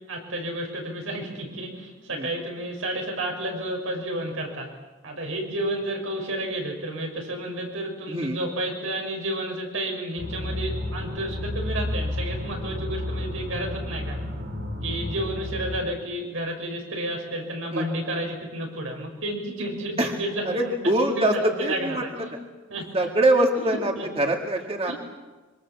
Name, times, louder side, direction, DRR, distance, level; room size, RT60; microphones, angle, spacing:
voice 1, 0.1-4.7 5.0-14.2 14.8-22.3 22.7-22.8 23.5-24.1 24.9-25.0, right 1 dB, 90° right, 1 dB, 6.8 m, -31 dB
sound 1, 10.2-15.8, left 1 dB, 65° right, 5.3 m, -31 dB
voice 2, 20.5-21.3 21.6-22.0 22.9-24.9, right 1 dB, 30° right, 2 dB, 2.1 m, -23 dB
26.0 x 25.0 x 7.4 m, 1.3 s
head